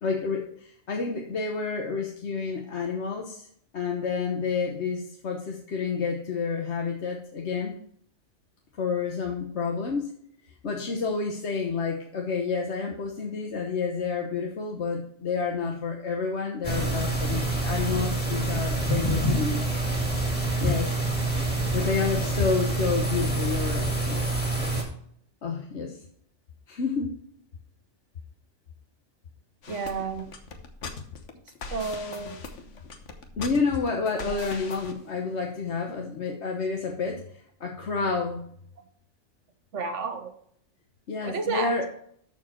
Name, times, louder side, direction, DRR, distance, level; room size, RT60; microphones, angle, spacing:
voice 1, 0.0-3.5 3.7-7.7 8.8-10.1 10.6-19.7 20.6-20.9 21.7-24.3 25.4-26.0 26.7-27.1 33.4-37.2 37.6-38.4 41.1-41.9, left 5 dB, 70° left, 1 dB, 1.3 m, -29 dB
sound 1, 16.6-24.8, right 2 dB, 10° left, 2.3 m, -26 dB
sound 2, 29.6-34.9, left 4 dB, 85° left, 1.4 m, -40 dB
voice 2, 29.7-30.3 31.7-32.4 34.2-34.4 39.7-40.3 41.2-41.8, right 5 dB, 80° right, 8 dB, 1.4 m, -31 dB
13.5 x 4.6 x 4.4 m, 0.65 s
omnidirectional pair, 1.2 m